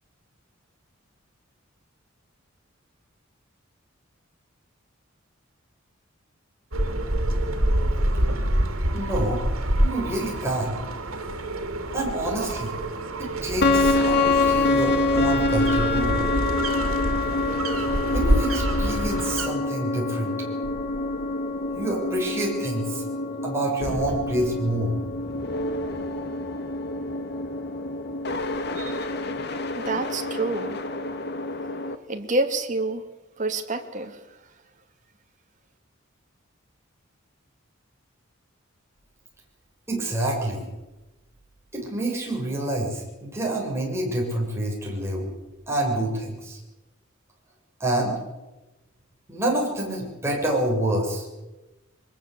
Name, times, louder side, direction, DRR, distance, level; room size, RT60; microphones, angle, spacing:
sound 1, 6.7-19.5, right 1 dB, 85° right, 3.0 m, -26 dB
voice 1, 8.9-9.4 9.8-10.7 11.9-12.7 13.2-16.2 18.1-20.3 21.7-23.0 23.4-24.9 39.9-40.7 41.7-45.3 45.7-46.6 47.8-48.2 49.3-51.3, right 1 dB, 15° right, -2 dB, 7.3 m, -27 dB
sound 2, 13.6-32.0, left 2 dB, 55° left, 1.7 m, -26 dB
voice 2, 28.7-29.1 29.8-30.8 32.1-33.0 33.4-34.5, right 2 dB, 35° right, 5 dB, 2.4 m, -28 dB
23.0 x 20.5 x 8.4 m, 1.1 s
head